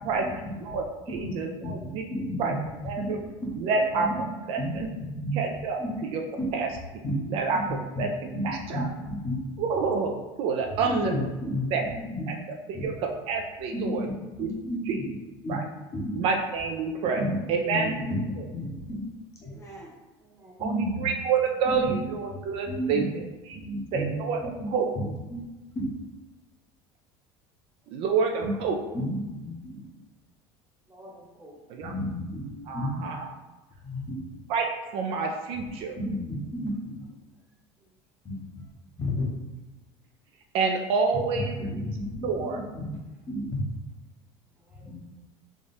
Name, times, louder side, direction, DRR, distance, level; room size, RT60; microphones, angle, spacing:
voice 1, 0.6-2.0 2.4-2.5 2.8-3.2 3.6-4.1 4.5-4.9 5.3-5.8 6.1-6.2 6.5-6.7 7.3-8.9 9.6-11.2 11.7-11.9 12.3-12.4 12.7-14.1 14.4-14.5 14.9-15.0 15.5-15.6 16.1-17.9 20.6-23.2 23.5-23.6 23.9-24.4 24.7-24.9 27.9-28.8 31.7-31.9 32.7-33.2 34.5-36.0 40.5-41.5 42.2-42.6, right 5 dB, 50° right, 2 dB, 0.4 m, -28 dB
voice 2, 1.6-2.5 3.0-3.1 3.4-3.6 4.0-4.2 4.6-5.4 5.8-6.0 6.4-6.5 7.0-7.3 7.5-8.1 8.3-9.4 10.8-12.3 12.7-12.9 13.7-15.1 15.4-15.6 15.9-16.1 17.2-17.4 17.7-19.0 19.4-19.9 20.6-21.1 21.6-22.0 22.6-23.1 23.5-24.1 24.4-24.7 24.9-25.4 25.7-25.9 28.4-28.5 28.9-29.9 31.8-33.1 33.8-34.2 36.0-37.0 38.2-38.6 39.0-39.3 41.3-43.0 43.3-43.7 44.8-45.0, equal, 25° left, -3 dB, 1.0 m, -32 dB
voice 3, 20.2-20.7 27.8-27.9 30.9-31.6 37.8-37.9 44.7-45.0, equal, 10° right, -3 dB, 0.9 m, -51 dB
3.5 x 2.3 x 4.1 m, 1.2 s
cardioid pair, 140°, 12 cm